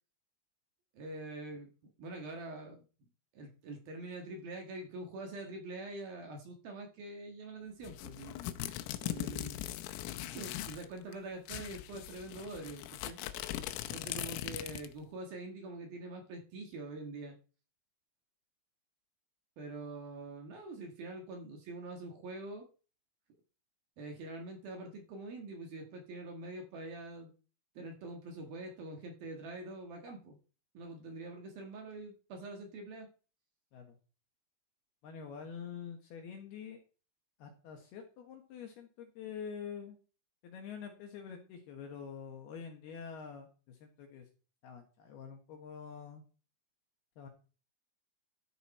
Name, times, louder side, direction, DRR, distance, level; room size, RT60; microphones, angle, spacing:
voice 1, 0.9-1.7 2.0-2.8 3.3-8.4 9.0-9.6 10.3-13.2 13.9-17.4 19.6-22.7 24.0-27.3 27.7-30.4 30.7-33.1, right 2 dB, 60° right, 2 dB, 3.1 m, -45 dB
sound 1, 7.8-10.9 11.1-11.2 11.5-15.0, left 14 dB, 85° left, 3.5 m, -40 dB
voice 2, 35.0-36.8 37.4-40.0 40.4-44.3 44.6-46.2 47.2-47.3, left 7 dB, 65° left, 4 dB, 2.9 m, -46 dB
13.5 x 7.9 x 4.3 m, 0.36 s
omnidirectional pair, 5.8 m